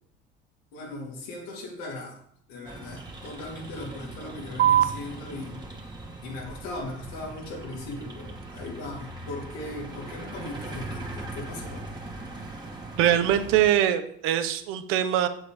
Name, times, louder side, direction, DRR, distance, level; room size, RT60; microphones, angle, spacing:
voice 1, 0.7-2.2 2.5-5.7 6.2-12.0, left 2 dB, 85° left, -2 dB, 3.4 m, -38 dB
sound 1, 2.6-13.7, right 2 dB, 20° right, 2.5 m, -40 dB
sound 2, 4.6-11.6, right 11 dB, 50° right, 0.7 m, -32 dB
voice 2, 13.0-15.3, right 11 dB, 75° right, 9 dB, 1.1 m, -23 dB
8.0 x 7.9 x 5.0 m, 0.67 s
supercardioid pair, 85°, 21 cm